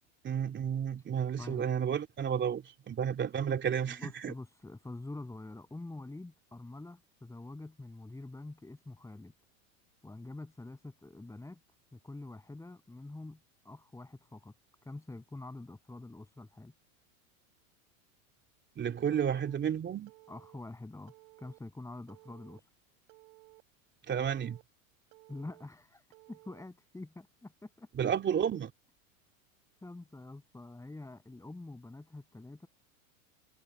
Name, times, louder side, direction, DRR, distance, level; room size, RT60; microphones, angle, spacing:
voice 1, 0.2-4.3 18.8-20.1 24.1-24.6 27.9-28.7, right 8 dB, 25° right, 3.2 m, -32 dB
voice 2, 3.9-9.3 10.0-11.6 11.9-13.4 13.6-14.5 14.8-16.7 20.3-21.1 21.4-22.6 25.3-28.1 29.8-32.7, left 2 dB, 5° left, 7.9 m, -46 dB
Telephone, 19.1-19.6 20.1-20.6 21.1-21.6 22.1-22.6 23.1-23.6 24.1-24.6 25.1-25.6 26.1-26.6, right 27 dB, 50° right, 4.5 m, -58 dB
hypercardioid pair, 115°, 42 cm